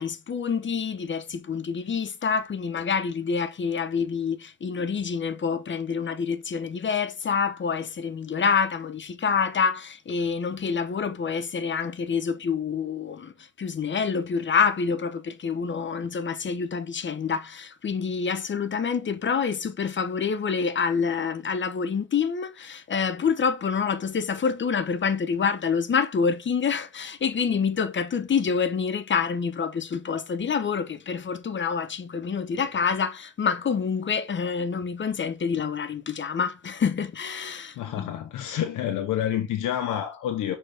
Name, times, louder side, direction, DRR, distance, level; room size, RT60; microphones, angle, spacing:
voice 1, 0.0-38.3, left 6 dB, 40° left, 1.0 m, -27 dB
voice 2, 37.8-40.6, left 10 dB, 85° left, 1.1 m, -28 dB
6.5 x 4.3 x 3.5 m
cardioid pair, 90°, 30 cm